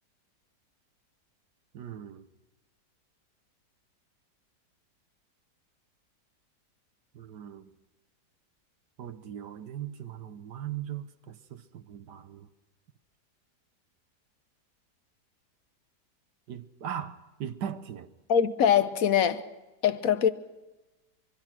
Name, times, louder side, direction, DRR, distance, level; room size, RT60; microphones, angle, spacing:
voice 1, 1.7-2.3 7.1-7.7 9.0-12.5 16.5-18.1, right 9 dB, 75° right, 1.6 m, -39 dB
voice 2, 18.3-19.4 19.8-20.3, left 8 dB, 60° left, 1.4 m, -23 dB
24.5 x 24.0 x 6.1 m
omnidirectional pair, 1.8 m